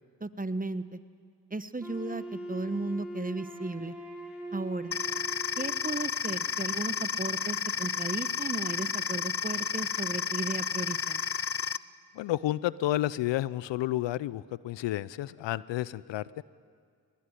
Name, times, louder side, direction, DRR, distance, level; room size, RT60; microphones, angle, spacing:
voice 1, 0.2-1.0 1.5-4.0 4.5-4.9 5.6-11.2, right 2 dB, 20° right, 13 dB, 1.2 m, -35 dB
Wind instrument woodwind instrument, 1.8-5.9, right 1 dB, 5° right, 6.7 m, -41 dB
sound 1, 4.9-11.8, left 7 dB, 30° left, 0.7 m, -32 dB
voice 2, 12.1-16.4, left 14 dB, 75° left, 19 dB, 0.6 m, -31 dB
21.5 x 20.5 x 9.9 m, 2.1 s
supercardioid pair, 40°, 44 cm